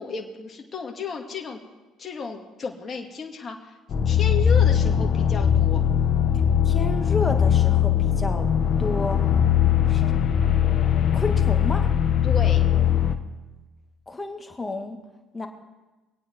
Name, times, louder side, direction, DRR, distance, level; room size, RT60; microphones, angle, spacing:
voice 1, 0.0-1.6 2.0-3.7 4.1-5.8 12.2-12.6, left 5 dB, 40° left, 2 dB, 2.1 m, -33 dB
sound 1, 3.9-13.2, left 9 dB, 55° left, 1.1 m, -20 dB
voice 2, 6.7-8.5 8.8-9.2 9.9-10.1 11.1-11.9 14.1-15.0 15.3-15.5, left 3 dB, 20° left, 5 dB, 2.1 m, -31 dB
24.0 x 9.0 x 4.6 m, 1.2 s
supercardioid pair, 75°, 0 cm